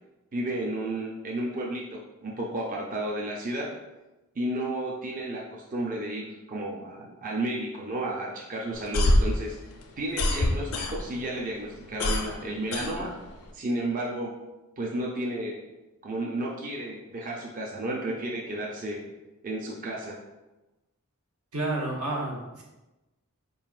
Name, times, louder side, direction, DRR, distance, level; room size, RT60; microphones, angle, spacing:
voice 1, 0.3-3.7 4.4-9.6 10.0-13.1 13.5-14.3 14.8-15.6 16.0-19.0 19.4-20.2, right 1 dB, 35° right, -3 dB, 0.5 m, -32 dB
sound 1, 8.7-11.3 11.6-13.5, left 1 dB, 80° left, 0.6 m, -25 dB
voice 2, 21.5-22.6, right 2 dB, 80° right, -3 dB, 1.1 m, -30 dB
4.7 x 3.8 x 2.4 m, 1.0 s
head